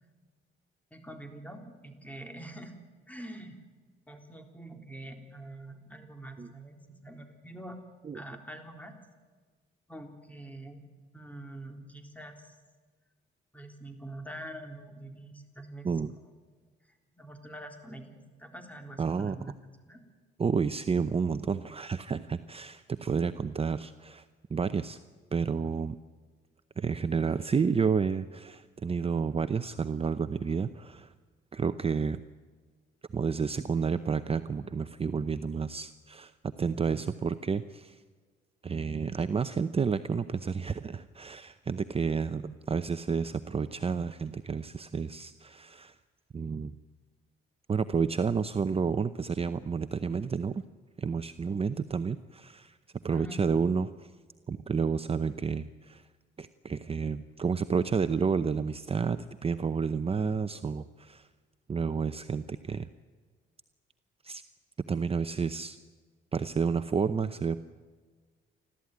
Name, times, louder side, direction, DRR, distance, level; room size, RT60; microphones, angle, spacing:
voice 1, 0.9-2.7 3.1-3.6 4.1-7.8 8.1-9.0 9.9-10.9 11.1-12.6 13.5-16.0 16.8-19.6 19.9-20.0 53.1-53.4, right 1 dB, 5° left, 5 dB, 3.7 m, -45 dB
voice 2, 19.0-19.5 20.4-24.2 24.5-25.0 25.3-26.0 26.8-31.1 31.5-32.2 33.1-38.0 38.6-46.0 46.3-46.7 47.7-50.6 51.0-54.1 54.5-56.0 56.4-61.3 61.7-62.9 64.2-64.4 64.9-65.8 66.3-67.6, right 5 dB, 30° right, 11 dB, 0.7 m, -30 dB
30.0 x 13.0 x 9.5 m, 1.5 s
cardioid pair, 90°, 20 cm